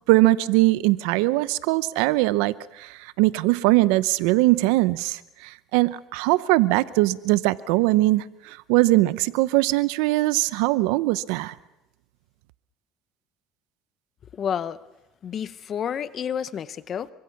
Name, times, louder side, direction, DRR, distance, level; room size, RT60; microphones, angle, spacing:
voice 1, 0.1-11.5, right 19 dB, 85° right, 0.7 m, -21 dB
voice 2, 14.3-14.8 15.2-17.1, left 8 dB, 40° left, 0.8 m, -30 dB
26.5 x 24.5 x 5.9 m
cardioid pair, 115°, 0 cm